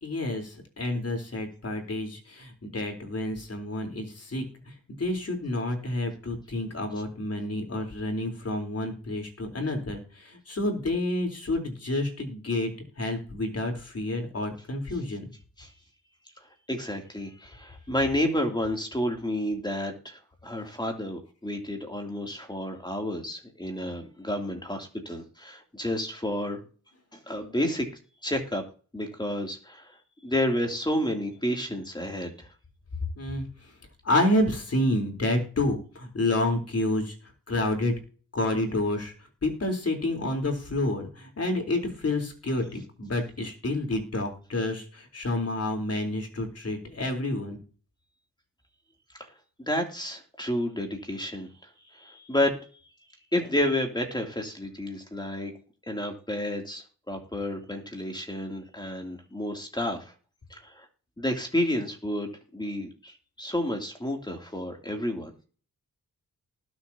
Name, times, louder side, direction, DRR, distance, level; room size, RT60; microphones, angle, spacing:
voice 1, 0.0-12.7 13.0-15.3 33.2-33.5 34.0-37.1 37.5-37.9 38.3-39.1 39.4-47.6, left 1 dB, 45° left, 3 dB, 3.9 m, -29 dB
voice 2, 16.7-26.6 27.1-27.9 28.2-28.6 28.9-30.0 30.2-32.5 49.2-49.3 49.7-51.5 51.9-52.5 53.3-55.5 55.9-60.1 60.5-60.9 61.2-65.3, left 1 dB, 15° left, 2 dB, 2.9 m, -30 dB
20.0 x 7.3 x 2.9 m, 0.39 s
cardioid pair, 80°, 33 cm